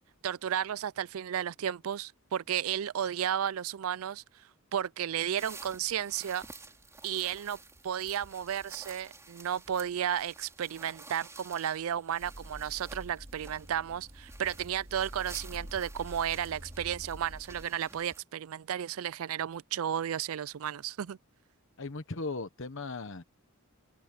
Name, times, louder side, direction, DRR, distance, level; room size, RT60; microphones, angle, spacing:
voice 1, 0.2-4.4 4.7-6.4 7.0-21.2, right 9 dB, 70° right, 0.4 m, -33 dB
sound 1, 5.4-18.2, right 3 dB, 15° right, 3.7 m, -52 dB
sound 2, 12.2-17.7, equal, 30° right, 4.2 m, -47 dB
voice 2, 21.8-23.2, left 3 dB, 60° left, 1.1 m, -37 dB
open air
head